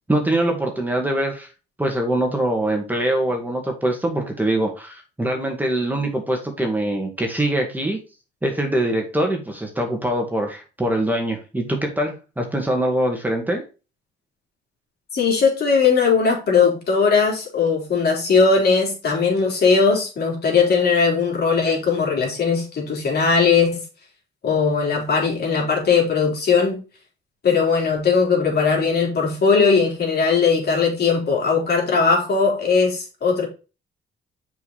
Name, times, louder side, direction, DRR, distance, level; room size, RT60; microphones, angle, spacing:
voice 1, 0.1-1.5 1.8-8.0 8.4-13.6, right 1 dB, 10° right, 2.1 m, -23 dB
voice 2, 15.1-23.8 24.4-26.8 27.4-33.5, left 5 dB, 55° left, 3.8 m, -19 dB
6.8 x 5.5 x 4.2 m
cardioid pair, 90°, 20 cm